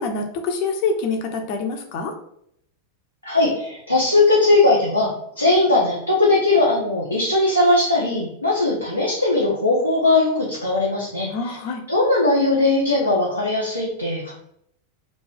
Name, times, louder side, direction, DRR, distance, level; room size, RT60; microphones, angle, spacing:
voice 1, 0.0-2.1 11.3-11.8, left 4 dB, 45° left, 4 dB, 0.5 m, -25 dB
voice 2, 3.2-5.1 5.3-11.6 11.9-14.3, left 2 dB, 90° left, -6 dB, 0.6 m, -19 dB
2.4 x 2.3 x 3.9 m, 0.71 s
figure-of-eight pair, 90°, 0 cm